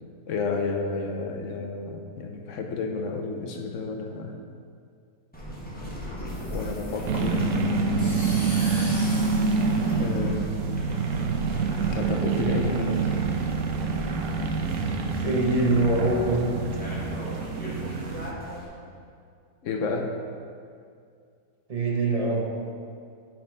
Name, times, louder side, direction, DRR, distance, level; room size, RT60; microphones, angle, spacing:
voice 1, 0.3-4.4 6.5-7.5 10.0-10.6 11.9-13.1 19.6-20.1, left 4 dB, 65° left, 3 dB, 0.9 m, -31 dB
sound 1, 5.3-18.7, equal, 5° left, 1.0 m, -37 dB
sound 2, 6.3-10.6, left 1 dB, 45° left, 2.3 m, -41 dB
sound 3, 7.1-18.3, right 4 dB, 65° right, 0.9 m, -27 dB
voice 2, 15.2-16.6 21.7-22.4, right 2 dB, 35° right, -1 dB, 0.6 m, -23 dB
6.0 x 5.2 x 5.4 m, 2.3 s
omnidirectional pair, 1.7 m